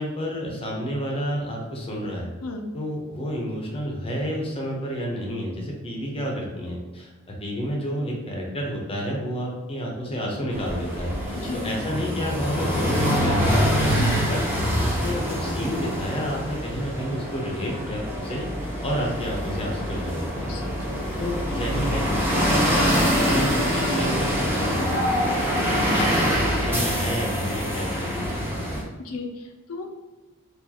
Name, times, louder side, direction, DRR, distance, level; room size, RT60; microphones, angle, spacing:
voice 1, 0.0-2.3 2.7-13.7 14.3-14.4 14.8-18.5 18.8-20.5 21.2-25.1 25.5-28.5, equal, 25° left, -1 dB, 0.7 m, -30 dB
sound 1, 10.5-28.8, equal, 10° right, 0.7 m, -25 dB
voice 2, 11.3-11.7 13.9-14.2 20.5-21.0 29.0-30.0, left 3 dB, 70° left, 3 dB, 0.5 m, -34 dB
4.5 x 2.5 x 2.8 m, 1.2 s
head